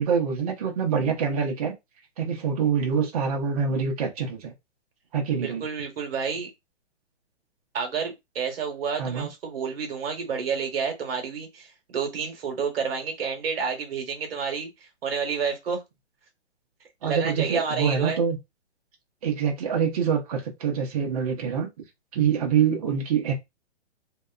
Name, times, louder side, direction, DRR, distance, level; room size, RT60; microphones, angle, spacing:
voice 1, 0.0-1.7 2.2-4.5 5.1-5.6 9.0-9.3 17.0-18.4 19.2-21.7 22.1-23.3, right 7 dB, 35° right, 0.7 m, -25 dB
voice 2, 5.4-6.5 7.7-15.8 17.0-18.2, right 6 dB, 55° right, 1.1 m, -30 dB
2.7 x 2.2 x 2.3 m
hypercardioid pair, 160°, 35 cm